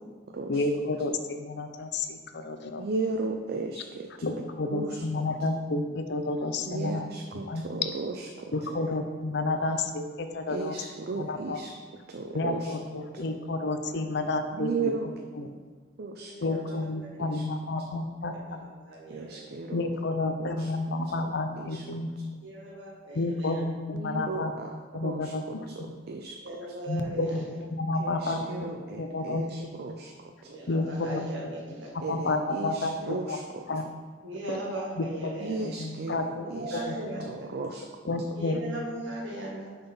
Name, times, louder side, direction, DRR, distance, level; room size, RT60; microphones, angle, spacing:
voice 1, 0.5-2.9 4.2-7.1 7.4-7.6 8.5-10.8 11.2-11.6 12.3-14.7 15.0-15.5 16.4-18.6 19.7-22.1 23.1-24.5 24.9-25.9 26.9-28.7 29.0-29.7 30.7-31.3 32.1-33.4 33.7-33.9 35.0-35.1 35.6-36.5 38.1-38.6, left 2 dB, 60° left, 7 dB, 0.6 m, -30 dB
voice 2, 2.8-4.1 4.7-5.0 6.7-8.5 10.5-11.7 12.1-12.7 14.6-15.1 16.0-16.3 17.2-17.4 19.1-19.8 20.4-20.7 21.6-21.8 23.9-25.3 25.9-26.4 28.0-30.1 32.0-33.4 35.4-36.8 37.5-37.8, right 3 dB, 55° right, 3 dB, 0.5 m, -35 dB
voice 3, 8.6-9.0 9.7-9.8 10.8-10.9 11.2-11.5 12.2-12.4 16.1-17.4 18.3-19.5 20.6-20.7 22.4-23.6 26.3-27.6 28.2-28.9 29.2-29.4 30.4-31.9 32.6-33.2 33.4-33.5 34.2-35.7 36.3-37.6 38.3-39.8, right 1 dB, 70° right, -3 dB, 1.6 m, -40 dB
6.7 x 4.1 x 5.5 m, 1.5 s
head